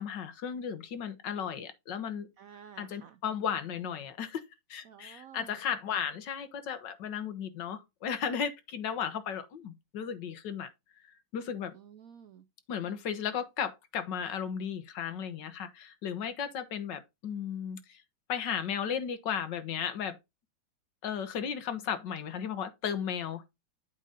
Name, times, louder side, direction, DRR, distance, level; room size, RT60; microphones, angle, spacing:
voice 1, 0.0-2.3 2.8-4.4 4.7-10.7 11.0-11.7 12.7-18.0 18.3-20.2 21.0-23.5, left 7 dB, 65° left, 1.6 m, -35 dB
voice 2, 2.4-3.2 4.8-5.6 11.7-12.4, right 8 dB, 85° right, 0.7 m, -52 dB
8.2 x 3.9 x 5.0 m
omnidirectional pair, 2.2 m